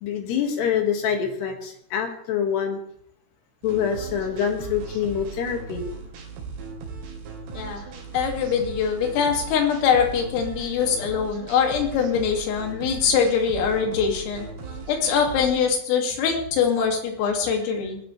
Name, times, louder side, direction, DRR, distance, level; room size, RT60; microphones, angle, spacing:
voice 1, 0.0-2.8 3.6-5.9, left 8 dB, 60° left, 4 dB, 3.7 m, -25 dB
sound 1, 3.6-15.5, right 4 dB, 85° right, 5.6 m, -38 dB
voice 2, 7.5-7.8 8.1-14.5 14.9-18.0, left 6 dB, 85° left, 2 dB, 5.1 m, -23 dB
21.0 x 13.5 x 3.3 m, 0.69 s
omnidirectional pair, 5.8 m